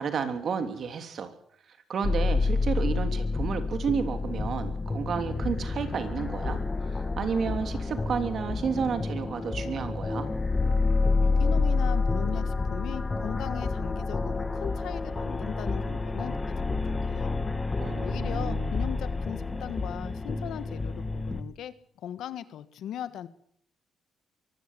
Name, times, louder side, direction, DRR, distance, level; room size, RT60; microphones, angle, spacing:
voice 1, 0.0-1.3 1.9-6.6 6.9-10.3 17.7-19.0, right 6 dB, 55° right, 8 dB, 3.2 m, -31 dB
sound 1, 2.0-21.4, left 3 dB, 25° left, 1.9 m, -29 dB
voice 2, 11.2-16.4 16.8-17.4 18.0-23.3, left 10 dB, 75° left, 14 dB, 1.5 m, -39 dB
23.5 x 16.5 x 7.5 m, 0.66 s
cardioid pair, 90°, 0 cm